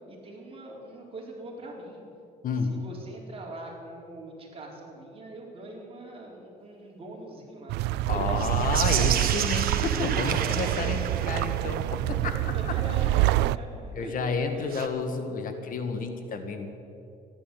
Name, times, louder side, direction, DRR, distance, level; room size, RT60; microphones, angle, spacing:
voice 1, 0.1-2.0 2.6-8.5 9.0-9.2 10.0-11.1 12.2-14.7, right 2 dB, 35° right, -1 dB, 4.1 m, -42 dB
voice 2, 2.4-2.8 8.1-12.3 12.7-12.8 13.9-16.7, left 4 dB, 55° left, 6 dB, 1.7 m, -30 dB
sound 1, 7.7-13.6, right 16 dB, 85° right, 0.4 m, -26 dB
sound 2, 8.3-11.8 14.7-14.9, right 9 dB, 60° right, 1.4 m, -32 dB
14.5 x 11.0 x 8.5 m, 2.6 s
cardioid pair, 110°, 17 cm